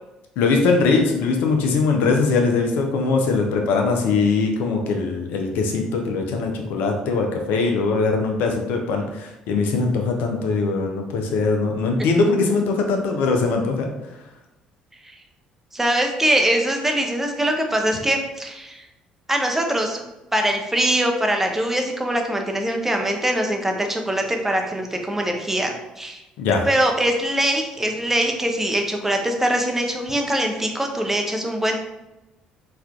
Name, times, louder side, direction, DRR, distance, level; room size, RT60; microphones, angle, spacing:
voice 1, 0.4-13.9 26.4-26.7, left 4 dB, 60° left, 3 dB, 0.5 m, -21 dB
voice 2, 15.7-18.8 19.3-20.1 20.3-26.2 26.7-31.8, right 1 dB, 10° right, 3 dB, 0.6 m, -22 dB
4.3 x 2.4 x 2.4 m, 0.98 s
figure-of-eight pair, 50°, 3 cm